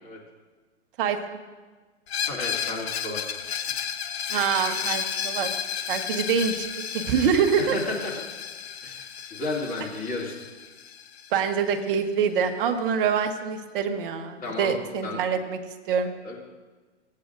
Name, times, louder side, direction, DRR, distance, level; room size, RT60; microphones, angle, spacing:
voice 1, 1.0-1.4 4.3-5.5 5.9-6.6 6.9-7.8 11.3-15.6 15.9-16.1, right 7 dB, 50° right, 6 dB, 1.1 m, -25 dB
Screech, 2.1-11.7, left 8 dB, 60° left, 0.9 m, -33 dB
voice 2, 2.2-3.2 7.6-8.1 8.8-10.3 14.4-14.7 15.0-15.2 16.2-16.4, left 2 dB, 25° left, -4 dB, 2.4 m, -32 dB
15.5 x 8.4 x 2.5 m, 1.3 s
hypercardioid pair, 125°, 36 cm